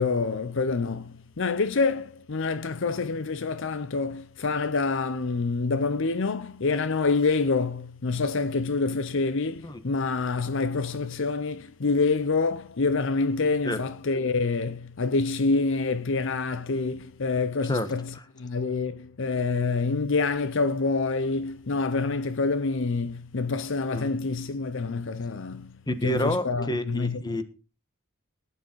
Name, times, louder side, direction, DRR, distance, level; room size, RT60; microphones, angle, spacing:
voice 1, 0.0-25.7 26.0-27.4, left 4 dB, 60° left, 0.7 m, -27 dB
voice 2, 25.9-27.4, left 1 dB, 20° left, 1.4 m, -28 dB
17.5 x 10.5 x 4.6 m
head